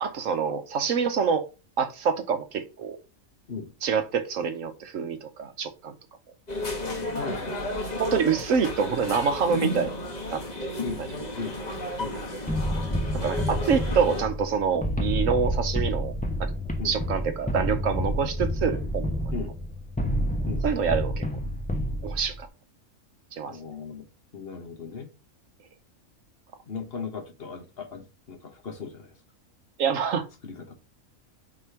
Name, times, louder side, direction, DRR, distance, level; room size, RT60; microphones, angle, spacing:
voice 1, 0.0-1.5 1.8-3.0 3.8-5.9 8.0-9.9 10.3-10.8 13.2-16.1 16.4-16.5 16.8-19.1 20.6-21.2 22.0-22.5 23.3-23.6 29.8-30.3, right 6 dB, 75° right, 1.3 m, -26 dB
sound 1, 6.5-14.2, left 1 dB, 30° left, 1.5 m, -33 dB
voice 2, 7.2-7.7 10.8-11.0 11.4-11.6 12.0-12.2 16.8-17.0 19.3-19.5 20.4-20.7 23.5-24.1 24.3-25.1 26.7-29.1 30.4-30.7, left 5 dB, 50° left, 1.2 m, -37 dB
sound 2, 12.5-22.4, equal, 5° left, 0.8 m, -29 dB
4.9 x 3.8 x 5.7 m
omnidirectional pair, 1.4 m